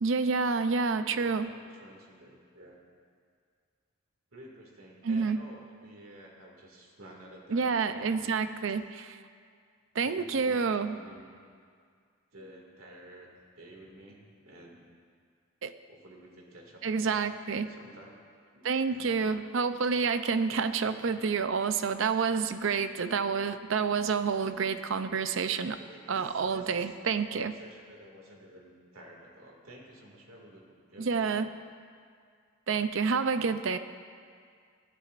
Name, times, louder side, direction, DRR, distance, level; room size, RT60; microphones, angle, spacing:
voice 1, 0.0-1.5 5.0-5.4 7.5-9.2 10.0-11.0 15.6-15.7 16.8-17.7 18.6-25.8 26.1-27.5 31.0-31.5 32.7-33.8, right 5 dB, 65° right, 11 dB, 0.5 m, -28 dB
voice 2, 1.1-2.8 4.3-8.4 10.0-11.4 12.3-14.8 15.9-17.2 17.7-18.3 18.5-19.3 20.5-21.1 22.2-22.5 25.7-26.8 27.3-31.4, right 1 dB, 80° right, -1 dB, 2.3 m, -52 dB
20.0 x 11.5 x 2.5 m, 2.1 s
head